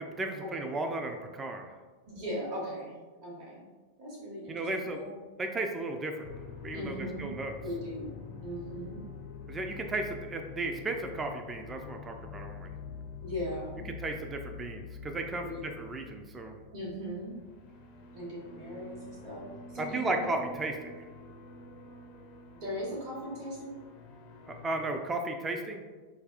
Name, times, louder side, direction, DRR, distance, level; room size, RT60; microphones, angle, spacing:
voice 1, 0.0-1.7 4.5-5.0 5.4-6.3 6.6-7.6 9.5-12.7 14.0-16.6 19.8-21.1 24.5-25.8, right 2 dB, 20° right, 4 dB, 0.4 m, -35 dB
voice 2, 2.1-3.0 3.2-3.6 4.0-5.1 6.7-7.3 7.6-9.0 13.2-13.9 15.3-15.8 16.7-17.4 18.1-20.3 22.5-23.8, equal, 40° right, -5 dB, 1.0 m, -39 dB
sound 1, 6.2-25.0, left 5 dB, 45° left, 0.4 m, -47 dB
5.3 x 2.3 x 2.4 m, 1.3 s
figure-of-eight pair, 90°, 0 cm